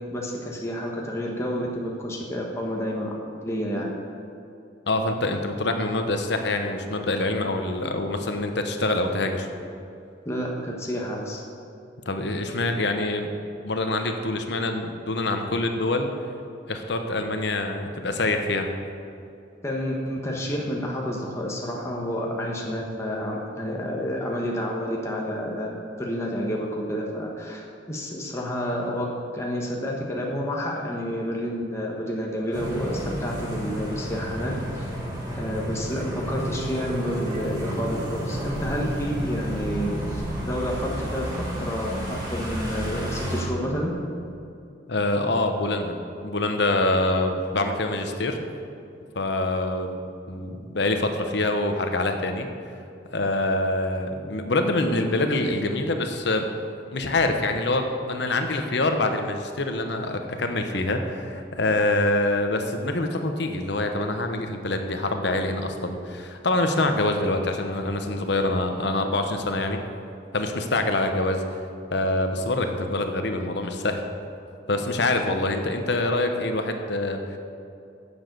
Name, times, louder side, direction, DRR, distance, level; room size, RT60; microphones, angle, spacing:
voice 1, 0.1-3.1 3.4-3.9 10.2-11.4 19.6-25.7 26.0-29.1 29.3-34.9 35.4-41.3 41.6-43.9, equal, 15° left, -2 dB, 1.2 m, -29 dB
voice 2, 4.9-9.5 12.1-13.3 13.6-16.1 16.7-18.7 44.9-46.0 46.2-48.4 49.1-50.0 50.3-52.5 53.1-56.5 56.9-69.8 70.3-71.4 71.9-74.0 74.7-77.4, left 2 dB, 60° left, 5 dB, 1.0 m, -25 dB
sound 1, 32.5-43.4, equal, 20° right, 2.3 m, -31 dB
9.9 x 7.2 x 6.7 m, 2.6 s
head